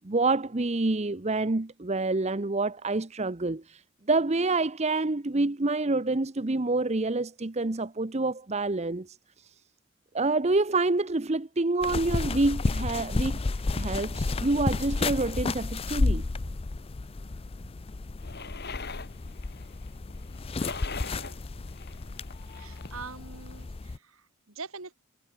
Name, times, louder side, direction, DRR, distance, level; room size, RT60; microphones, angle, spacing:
voice 1, 0.0-3.8 4.1-9.2 10.1-13.4 13.7-16.2, right 2 dB, 30° right, 0.8 m, -27 dB
sound 1, 11.8-24.0, left 3 dB, 25° left, 0.4 m, -32 dB
sound 2, 18.2-23.0, left 4 dB, 50° left, 4.3 m, -43 dB
voice 2, 22.5-25.0, right 4 dB, 75° right, 2.4 m, -44 dB
head